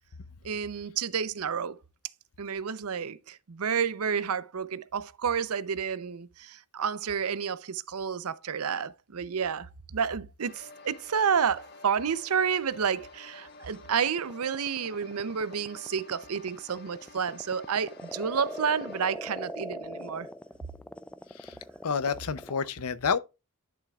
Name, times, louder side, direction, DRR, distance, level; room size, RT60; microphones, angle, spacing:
voice 1, 0.4-1.8 2.4-9.7 9.9-20.3, right 7 dB, 80° right, 0.6 m, -30 dB
sound 1, 10.4-19.0, left 3 dB, 50° left, 1.1 m, -50 dB
sound 2, 13.7-22.7, equal, 5° left, 0.3 m, -41 dB
voice 2, 21.8-23.2, left 6 dB, 80° left, 0.6 m, -29 dB
11.0 x 6.6 x 2.4 m
head